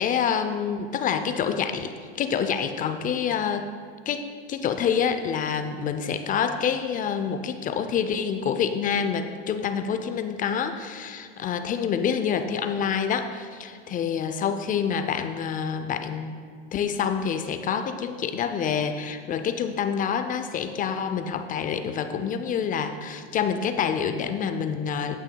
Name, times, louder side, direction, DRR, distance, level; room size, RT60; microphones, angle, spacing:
voice 1, 0.0-3.7 4.1-16.3 16.7-25.2, left 7 dB, 25° left, 8 dB, 0.4 m, -27 dB
18.0 x 6.2 x 2.2 m, 2.1 s
hypercardioid pair, 105°, 34 cm